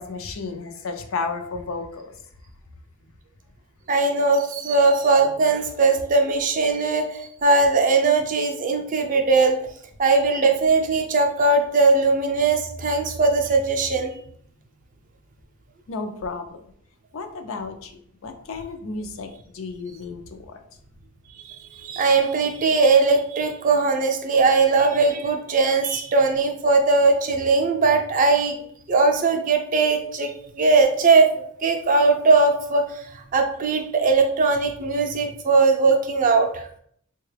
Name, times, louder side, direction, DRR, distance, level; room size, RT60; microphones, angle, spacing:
voice 1, 0.0-2.1 15.9-16.6 17.1-20.6, left 4 dB, 65° left, 6 dB, 0.4 m, -33 dB
voice 2, 3.9-9.6 10.0-14.1 21.4-30.3 30.6-36.7, right 3 dB, 35° right, 4 dB, 0.4 m, -20 dB
3.7 x 2.2 x 3.2 m, 0.65 s
head